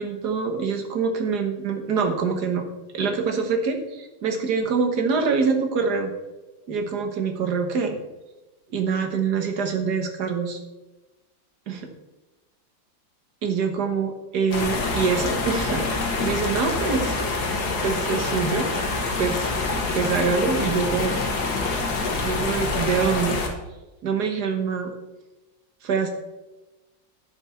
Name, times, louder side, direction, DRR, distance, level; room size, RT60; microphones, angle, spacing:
voice 1, 0.0-2.6 2.9-6.1 6.7-8.0 8.7-10.6 11.7-11.9 13.4-17.2 17.8-18.7 19.2-19.5 19.9-21.2 22.2-23.4 24.0-24.9 25.8-26.1, right 5 dB, 60° right, 5 dB, 1.7 m, -25 dB
sound 1, 14.5-23.5, left 3 dB, 60° left, 1.9 m, -26 dB
9.8 x 5.3 x 5.7 m, 1.0 s
omnidirectional pair, 2.1 m